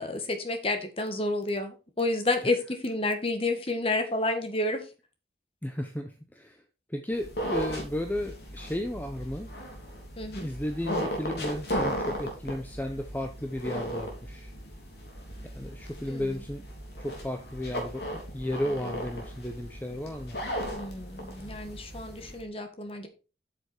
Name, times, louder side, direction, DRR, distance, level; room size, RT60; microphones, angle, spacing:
voice 1, 0.0-4.9 10.2-10.5 16.0-16.4 20.7-23.1, left 2 dB, 30° left, 6 dB, 1.7 m, -30 dB
voice 2, 5.6-6.6 6.9-9.5 10.4-14.5 15.4-16.6 17.0-20.4, left 1 dB, 10° left, 5 dB, 0.7 m, -34 dB
sound 1, 7.1-22.4, equal, 65° left, 3.3 m, -36 dB
8.2 x 6.9 x 4.5 m, 0.32 s
head